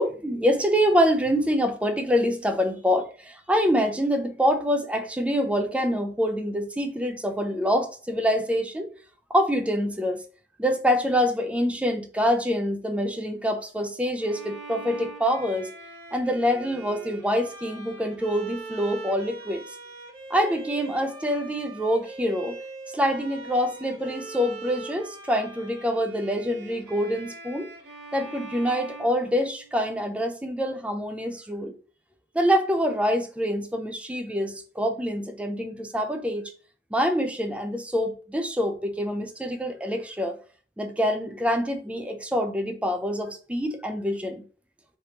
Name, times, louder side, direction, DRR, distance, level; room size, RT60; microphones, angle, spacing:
voice 1, 0.0-8.9 9.3-10.2 10.6-15.7 16.1-19.6 20.3-22.6 22.9-27.7 28.1-31.7 32.3-36.5 36.9-40.4 40.8-44.4, equal, 5° right, 0.4 m, -25 dB
Bowed string instrument, 14.2-29.9, right 3 dB, 60° right, 1.0 m, -42 dB
3.3 x 2.9 x 2.8 m
head